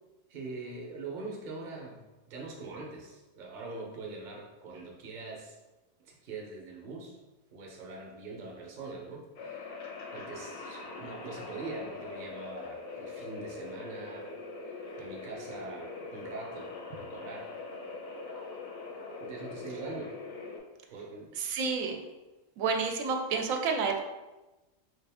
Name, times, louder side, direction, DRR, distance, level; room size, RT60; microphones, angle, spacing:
voice 1, 0.3-5.5 6.0-7.2 7.5-9.8 10.1-14.3 14.7-17.5 19.2-20.2 20.9-21.3, right 3 dB, 45° right, -1 dB, 0.8 m, -43 dB
sound 1, 9.4-20.6, left 3 dB, 80° left, 1.1 m, -42 dB
voice 2, 21.4-22.0 22.6-24.0, right 5 dB, 90° right, 4 dB, 1.0 m, -29 dB
4.1 x 2.5 x 3.4 m, 1.1 s
omnidirectional pair, 1.4 m